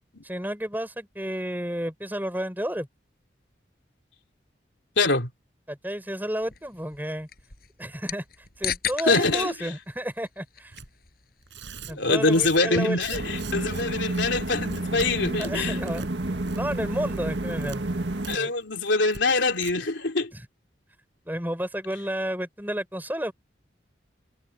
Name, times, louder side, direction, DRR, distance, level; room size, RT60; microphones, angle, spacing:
voice 1, 0.2-2.9 5.7-7.3 7.8-8.2 8.6-10.8 11.9-13.2 15.4-16.0 16.5-17.8 18.4-18.6 20.3-20.5 21.3-23.3, equal, 10° right, 5.7 m, -31 dB
voice 2, 5.0-5.3 9.1-9.5 12.0-15.8 18.3-20.3, left 3 dB, 85° left, 3.2 m, -24 dB
sound 1, 6.4-17.1, left 9 dB, 55° left, 6.3 m, -41 dB
Tearing, 10.7-10.9 11.4-13.8 14.1-14.3 14.6-15.1 15.4-16.1 16.4-16.8 17.1-17.8 18.2-18.4 18.6-18.7 19.1-19.2 19.5-19.7, right 5 dB, 90° right, 5.4 m, -42 dB
sound 2, 13.1-18.4, right 2 dB, 70° right, 1.8 m, -30 dB
head